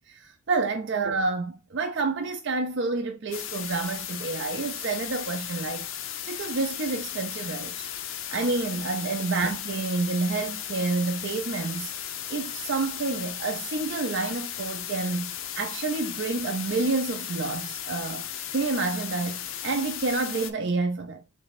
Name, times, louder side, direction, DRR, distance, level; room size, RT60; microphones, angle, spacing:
voice 1, 0.1-5.9 6.3-11.9 12.3-21.2, right 3 dB, 55° right, 0.4 m, -29 dB
sound 1, 3.3-20.5, left 10 dB, 65° left, 0.5 m, -36 dB
3.4 x 3.1 x 4.1 m
head